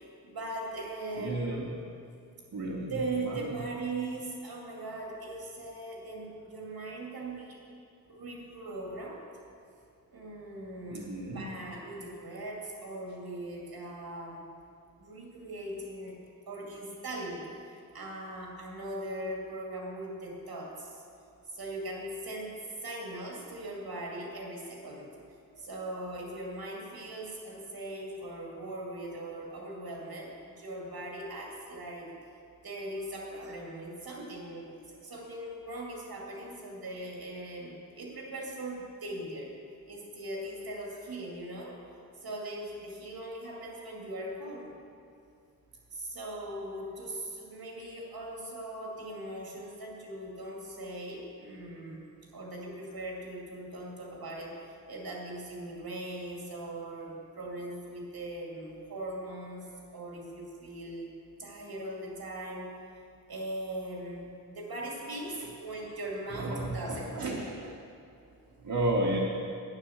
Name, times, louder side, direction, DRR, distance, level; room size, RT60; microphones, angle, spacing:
voice 1, 0.0-1.6 2.9-7.6 8.1-9.2 10.1-14.5 15.0-16.2 16.5-21.0 21.5-25.1 25.6-32.1 32.6-39.6 39.9-41.8 42.2-44.8 45.9-52.0 52.3-54.6 54.9-61.1 61.4-62.7 63.3-67.2, right 1 dB, 90° right, -2 dB, 2.5 m, -40 dB
voice 2, 1.2-1.7 2.5-2.9 3.2-3.5 10.9-11.5 66.3-67.8 68.6-69.2, right 1 dB, 70° right, -3 dB, 1.4 m, -32 dB
9.7 x 9.7 x 7.3 m, 2.5 s
wide cardioid pair, 100°, 35 cm